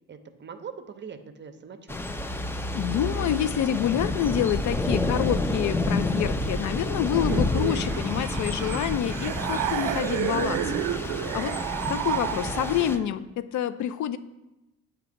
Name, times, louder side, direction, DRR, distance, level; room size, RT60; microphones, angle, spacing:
voice 1, 0.1-2.2, right 6 dB, 40° right, 9 dB, 0.6 m, -42 dB
Thunder / Rain, 1.9-13.0, left 2 dB, 10° left, 0.4 m, -29 dB
voice 2, 2.7-11.6 11.9-14.2, left 10 dB, 70° left, 13 dB, 0.5 m, -27 dB
sound 1, 7.2-13.1, right 11 dB, 85° right, 0.5 m, -31 dB
8.2 x 2.9 x 5.1 m, 1.0 s
cardioid pair, 90°, 30 cm